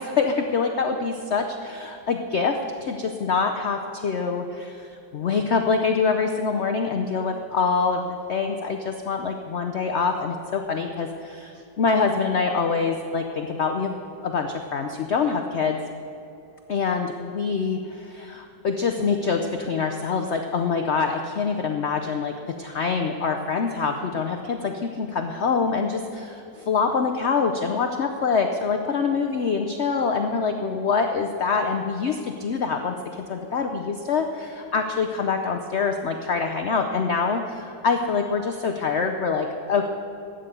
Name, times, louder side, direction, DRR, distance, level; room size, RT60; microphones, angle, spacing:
voice 1, 0.0-15.8 16.7-39.9, left 5 dB, 60° left, 4 dB, 0.7 m, -25 dB
13.0 x 9.2 x 6.7 m, 2.8 s
omnidirectional pair, 1.8 m